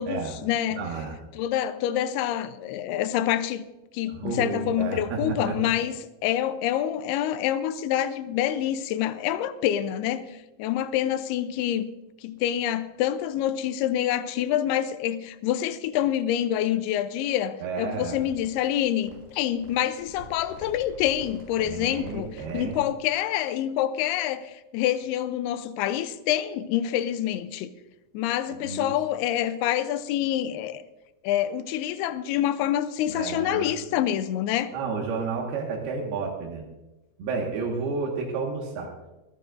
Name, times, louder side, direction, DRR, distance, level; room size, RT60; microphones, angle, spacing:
voice 1, 0.0-0.9 1.3-3.6 3.9-6.0 6.2-11.9 12.2-22.3 22.5-27.7 28.1-30.8 31.2-34.7, left 11 dB, 80° left, 2.6 m, -27 dB
voice 2, 0.7-1.2 4.1-5.7 17.6-18.2 21.6-22.7 28.5-28.9 33.1-33.7 34.7-36.7 37.2-38.9, right 4 dB, 75° right, 3.6 m, -31 dB
sound 1, 17.9-22.9, right 1 dB, 20° right, 4.1 m, -47 dB
26.5 x 9.7 x 2.6 m
omnidirectional pair, 4.6 m